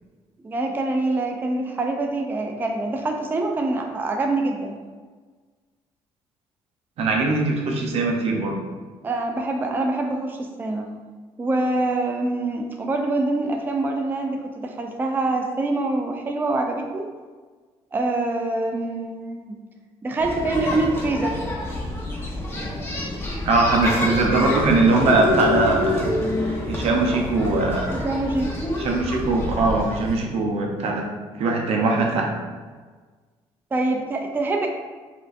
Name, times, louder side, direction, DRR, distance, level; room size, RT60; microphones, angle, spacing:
voice 1, 0.4-4.8 9.0-10.9 11.4-17.1 17.9-19.5 20.0-21.4 21.7-21.8 27.9-28.5 33.7-34.7, right 2 dB, 20° right, 2 dB, 0.3 m, -25 dB
voice 2, 7.0-8.6 23.4-26.1 26.7-27.9 28.8-31.1 31.4-32.3, right 3 dB, 70° right, 0 dB, 0.6 m, -21 dB
sound 1, 20.2-30.2, left 2 dB, 20° left, 0.9 m, -27 dB
4.3 x 2.5 x 2.5 m, 1.4 s
cardioid pair, 90°, 11 cm